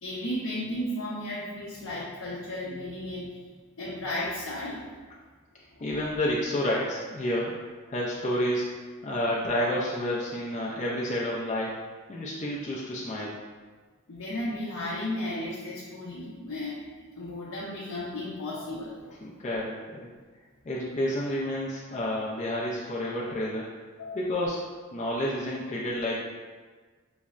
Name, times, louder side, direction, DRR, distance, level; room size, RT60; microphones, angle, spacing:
voice 1, 0.0-3.4 3.8-4.9 5.7-5.9 14.1-16.8 17.2-19.0 24.0-24.2, left 1 dB, 65° left, -8 dB, 0.6 m, -34 dB
voice 2, 5.8-7.5 7.9-8.7 9.0-11.8 12.1-13.4 19.2-20.1 20.7-23.7 24.1-24.6 24.9-26.2, left 1 dB, 35° left, -5 dB, 0.3 m, -30 dB
5.4 x 2.0 x 2.4 m, 1.4 s
head